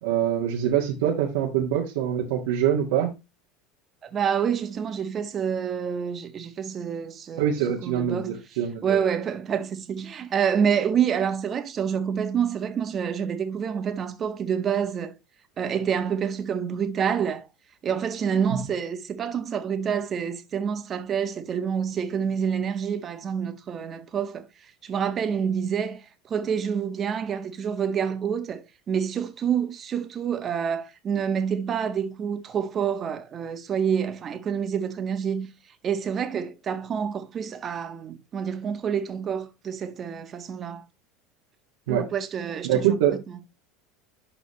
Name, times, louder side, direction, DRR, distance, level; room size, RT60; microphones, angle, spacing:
voice 1, 0.0-3.1 7.4-9.0 41.9-42.0 42.6-43.2, right 10 dB, 80° right, 1.8 m, -24 dB
voice 2, 4.0-8.4 8.8-15.1 15.6-17.5 17.8-24.5 24.8-26.0 26.3-35.5 35.8-40.8 41.9-43.0 43.3-43.4, right 7 dB, 40° right, 1.6 m, -27 dB
11.5 x 4.0 x 3.1 m
hypercardioid pair, 90°, 0 cm